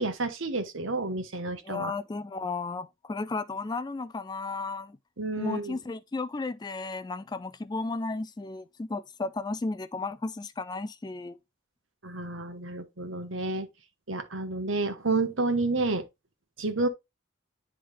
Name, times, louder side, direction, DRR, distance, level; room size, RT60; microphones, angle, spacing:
voice 1, 0.0-1.9 5.2-5.8 12.0-13.7 14.1-16.0 16.6-16.9, right 3 dB, 75° right, 1.2 m, -30 dB
voice 2, 1.6-5.0 5.4-11.4, left 3 dB, 20° left, 0.3 m, -34 dB
10.0 x 3.6 x 3.2 m
head